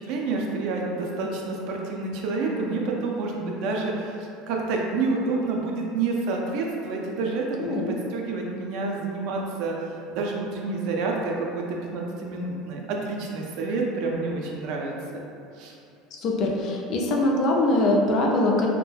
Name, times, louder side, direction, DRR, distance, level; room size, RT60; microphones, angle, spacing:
voice 1, 0.0-15.2 15.6-15.7, right 3 dB, 60° right, -1 dB, 0.4 m, -29 dB
voice 2, 16.1-18.7, left 2 dB, 45° left, -1 dB, 0.3 m, -22 dB
2.3 x 2.1 x 3.1 m, 2.5 s
cardioid pair, 155°, 0 cm